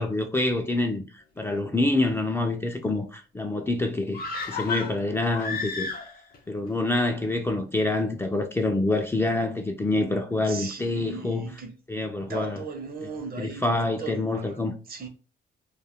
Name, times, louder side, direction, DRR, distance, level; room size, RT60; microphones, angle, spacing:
voice 1, 0.0-5.9 6.5-11.5 11.9-12.6 13.4-14.7, left 2 dB, 10° left, 0.4 m, -26 dB
sound 1, 4.1-6.4 6.7-6.8, left 4 dB, 50° left, 0.7 m, -32 dB
voice 2, 10.4-11.7 12.3-14.6 14.9-15.1, right 5 dB, 50° right, 0.7 m, -37 dB
2.3 x 2.1 x 3.4 m
cardioid pair, 90°, 20 cm